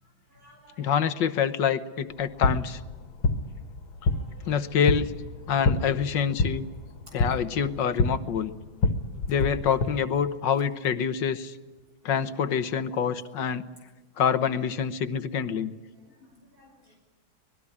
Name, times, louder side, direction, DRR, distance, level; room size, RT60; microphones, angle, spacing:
voice 1, 0.0-0.9 3.2-3.3 4.0-4.6 16.0-16.9, equal, 50° right, 2 dB, 6.5 m, -57 dB
voice 2, 0.8-2.8 4.5-5.1 5.5-6.6 7.1-8.5 9.3-11.6 12.1-13.7 14.2-15.7, left 7 dB, 65° left, 12 dB, 1.8 m, -26 dB
sound 1, 2.1-9.9, left 3 dB, 85° left, 2.4 m, -28 dB
25.0 x 20.5 x 9.8 m, 1.3 s
omnidirectional pair, 2.1 m